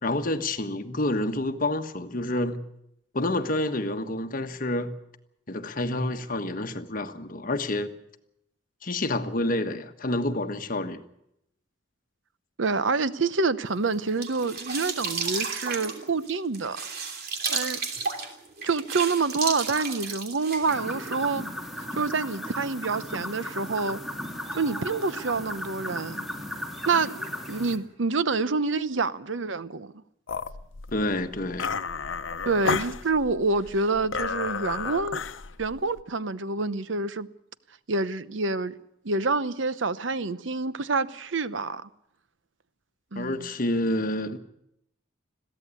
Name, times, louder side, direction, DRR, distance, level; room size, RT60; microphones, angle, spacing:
voice 1, 0.0-2.6 3.1-4.9 5.5-7.9 8.8-11.0 30.9-31.8 43.1-44.4, left 1 dB, 45° left, 1.4 m, -28 dB
voice 2, 12.6-16.8 17.5-17.8 18.6-21.5 21.9-24.0 24.5-26.2 26.9-27.2 27.5-29.9 32.5-35.2 35.6-37.3 37.9-38.7 39.0-41.9 43.1-43.4, right 4 dB, 75° right, 0.9 m, -27 dB
sound 1, 13.9-21.2, right 5 dB, 55° right, 3.0 m, -33 dB
sound 2, 20.7-27.8, left 1 dB, ahead, 2.8 m, -36 dB
sound 3, 30.3-36.0, left 5 dB, 90° left, 0.8 m, -32 dB
21.5 x 15.5 x 8.4 m
head